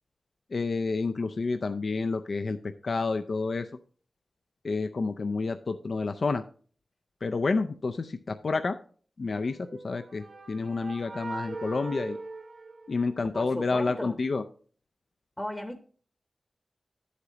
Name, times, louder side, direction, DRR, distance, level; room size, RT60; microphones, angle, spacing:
voice 1, 0.5-3.7 4.6-6.4 7.2-8.8 9.2-12.2 12.9-14.4, left 3 dB, 60° left, 0.4 m, -29 dB
sound 1, 9.6-13.5, right 3 dB, 60° right, 0.8 m, -41 dB
voice 2, 13.3-14.2 15.4-15.8, left 1 dB, 10° left, 0.9 m, -36 dB
10.5 x 8.1 x 2.9 m
wide cardioid pair, 115°, 0 cm